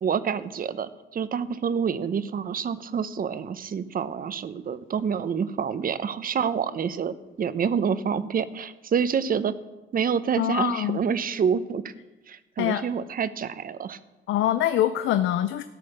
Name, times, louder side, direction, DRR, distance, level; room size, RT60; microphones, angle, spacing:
voice 1, 0.0-9.5 9.9-11.9 12.3-14.0, right 7 dB, 45° right, 14 dB, 0.8 m, -27 dB
voice 2, 10.4-11.0 12.6-12.8 14.3-15.6, left 12 dB, 80° left, 11 dB, 0.6 m, -24 dB
14.0 x 8.4 x 6.5 m, 1.1 s
cardioid pair, 90°, 20 cm